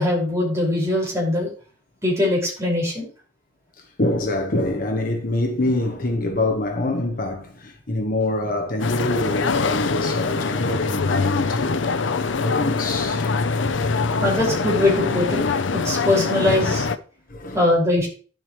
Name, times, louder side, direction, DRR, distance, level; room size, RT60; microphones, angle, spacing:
voice 1, 0.0-1.5 2.0-3.1 14.2-15.4 15.7-16.9 17.5-18.1, left 1 dB, 15° right, 5.1 m, -21 dB
voice 2, 4.0-12.0 12.3-14.1 17.3-17.6, left 1 dB, 50° left, 1.2 m, -25 dB
sound 1, 8.8-17.0, left 4 dB, 90° left, 0.6 m, -23 dB
11.0 x 7.9 x 3.1 m
head